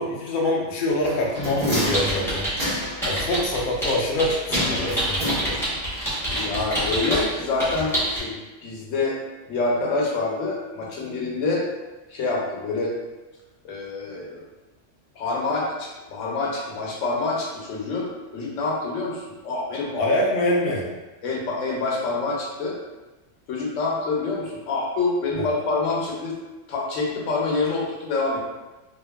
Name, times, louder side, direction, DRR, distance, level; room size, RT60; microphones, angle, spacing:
voice 1, 0.0-2.5 3.0-5.6 20.0-20.9 25.3-25.5, left 1 dB, 55° left, -3 dB, 0.6 m, -25 dB
sound 1, 1.0-3.1 4.5-5.9 6.2-6.3, equal, 45° right, 1.1 m, -28 dB
sound 2, 1.8-2.7 3.0-7.3 7.6-8.2, right 1 dB, ahead, 1.0 m, -26 dB
voice 2, 6.3-9.2 9.5-11.7 12.1-12.9 13.6-14.4 15.2-20.1 21.2-22.8 23.5-26.3 26.7-28.4, left 3 dB, 85° left, -3 dB, 1.0 m, -26 dB
2.6 x 2.5 x 2.2 m, 1.1 s
omnidirectional pair, 1.3 m